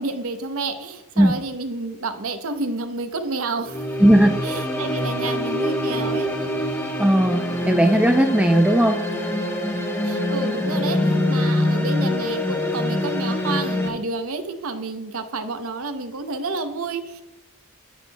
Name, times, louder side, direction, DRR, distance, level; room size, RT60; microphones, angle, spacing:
voice 1, 0.0-3.9 4.4-6.3 10.0-17.2, right 3 dB, 75° right, 8 dB, 0.8 m, -30 dB
sound 1, 3.6-13.9, left 1 dB, 10° left, 1.0 m, -24 dB
voice 2, 4.0-4.3 7.0-9.0, equal, 5° right, 5 dB, 0.4 m, -17 dB
10.5 x 9.2 x 2.3 m, 0.96 s
head